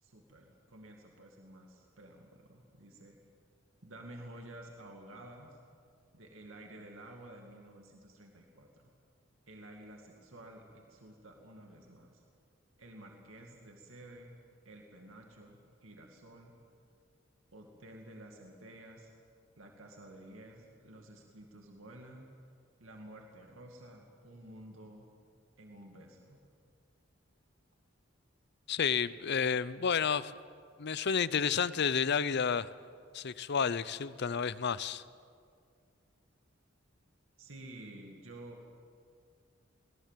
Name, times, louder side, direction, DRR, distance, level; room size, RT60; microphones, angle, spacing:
voice 1, 0.0-3.2 3.8-5.6 6.1-8.8 9.5-12.2 12.8-14.4 14.6-16.5 17.5-19.1 19.6-22.3 22.8-25.1 25.6-26.4 37.4-38.7, right 1 dB, 80° right, 1 dB, 2.3 m, -52 dB
voice 2, 28.7-30.3 30.8-32.7 33.1-35.0, left 6 dB, 55° left, 17 dB, 0.6 m, -31 dB
24.0 x 18.0 x 7.5 m, 2.2 s
head